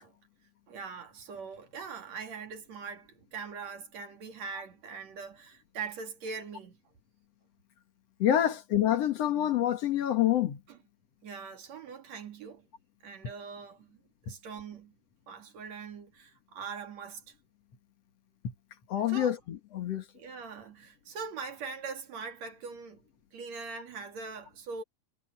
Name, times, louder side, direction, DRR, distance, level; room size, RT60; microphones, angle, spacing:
voice 1, 0.7-6.8 8.4-8.5 10.7-10.8 11.2-12.7 13.0-14.0 14.2-15.0 15.3-17.3 19.1-19.3 20.1-23.0 23.3-24.8, right 5 dB, 50° right, 3.0 m, -42 dB
voice 2, 8.2-10.6 18.9-20.0, left 11 dB, 50° left, 2.3 m, -27 dB
omnidirectional pair, 4.5 m